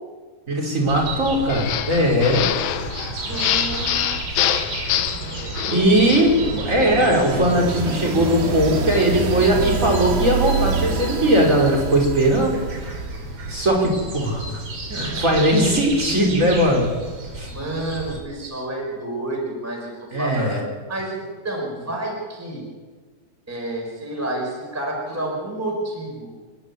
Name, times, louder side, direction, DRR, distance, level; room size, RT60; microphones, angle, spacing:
voice 1, 0.5-2.5 5.7-12.6 13.5-14.6 14.9-16.9 17.3-17.5 20.1-20.6, equal, 20° right, -1 dB, 5.1 m, -19 dB
sound 1, 0.9-18.2, right 3 dB, 40° right, 3.4 m, -32 dB
ODwyers Store metal sliding gate closed & locking, 1.5-6.4, left 11 dB, 80° left, 1.6 m, -25 dB
voice 2, 3.2-4.6 4.9-5.8 6.4-6.9 13.5-13.7 14.8-15.7 16.0-16.3 17.5-20.6 20.9-22.6 23.5-26.3, right 1 dB, 5° right, 0 dB, 4.6 m, -30 dB
sound 2, 4.7-13.6, right 5 dB, 70° right, 3.8 m, -28 dB
29.0 x 11.0 x 9.7 m, 1.4 s
omnidirectional pair, 4.5 m